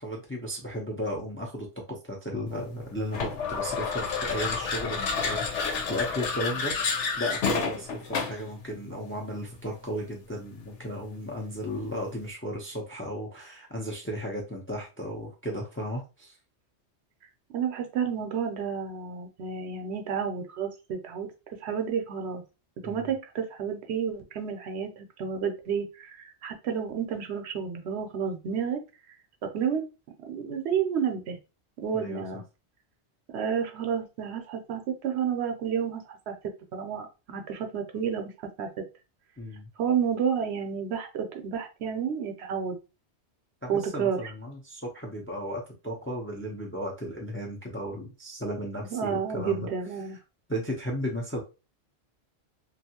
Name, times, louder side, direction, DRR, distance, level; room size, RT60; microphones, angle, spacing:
voice 1, 0.0-16.4 22.8-23.1 31.9-32.2 39.4-39.7 43.6-49.7 50.5-51.4, equal, 15° left, 0 dB, 0.5 m, -35 dB
sound 1, 3.1-8.5, left 5 dB, 85° left, 1.0 m, -30 dB
voice 2, 5.0-5.5 17.5-21.3 21.6-22.4 22.8-28.8 29.4-29.8 30.3-31.4 31.8-32.4 33.3-36.3 36.7-38.3 38.6-38.7 39.8-42.8 43.7-44.3 48.8-50.2, right 7 dB, 70° right, 5 dB, 0.8 m, -30 dB
2.6 x 2.3 x 2.8 m, 0.30 s
omnidirectional pair, 1.2 m